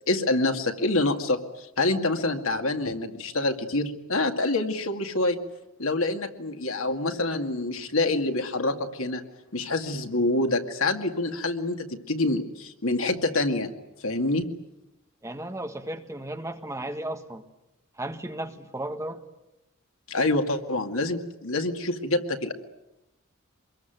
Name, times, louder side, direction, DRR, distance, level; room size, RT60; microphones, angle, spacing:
voice 1, 0.1-5.4 5.8-9.2 9.5-13.7 14.0-14.5 20.1-22.5, left 2 dB, 80° left, 5 dB, 2.3 m, -26 dB
voice 2, 15.2-17.4 18.0-19.2, right 1 dB, 15° right, 6 dB, 1.6 m, -34 dB
25.5 x 22.0 x 9.3 m, 0.91 s
head